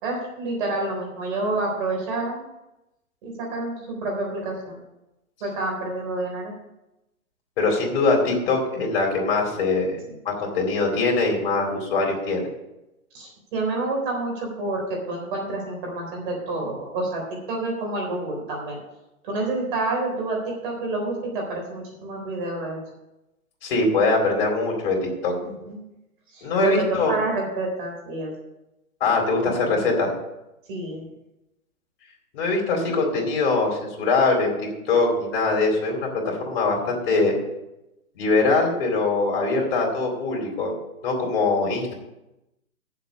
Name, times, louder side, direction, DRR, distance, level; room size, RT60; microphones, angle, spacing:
voice 1, 0.0-2.4 3.2-4.8 5.4-6.5 13.1-18.8 19.2-22.8 25.4-25.8 26.3-28.3 30.7-31.0, right 2 dB, 35° right, 0 dB, 3.8 m, -28 dB
voice 2, 7.6-10.0 10.2-12.5 23.6-25.3 26.4-27.2 29.0-30.1 32.3-37.3 38.2-40.7 41.0-41.9, left 3 dB, 40° left, 1 dB, 4.0 m, -22 dB
8.2 x 7.5 x 8.4 m, 0.94 s
hypercardioid pair, 155°, 43 cm